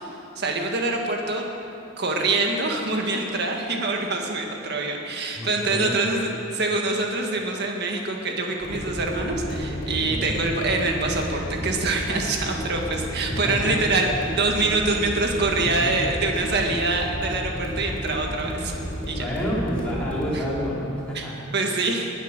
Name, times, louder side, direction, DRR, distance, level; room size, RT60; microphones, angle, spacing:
voice 1, 0.1-1.5 2.0-18.7 19.1-19.2 20.3-20.4 21.1-21.2 21.5-22.1, right 2 dB, 55° right, 2 dB, 1.7 m, -25 dB
voice 2, 5.4-5.9 10.1-10.3 13.4-13.7 15.6-15.8 19.1-21.4, equal, 5° left, -7 dB, 3.8 m, -29 dB
sound 1, 8.6-20.3, equal, 45° left, 4.4 m, -32 dB
20.0 x 9.8 x 6.6 m, 2.8 s
head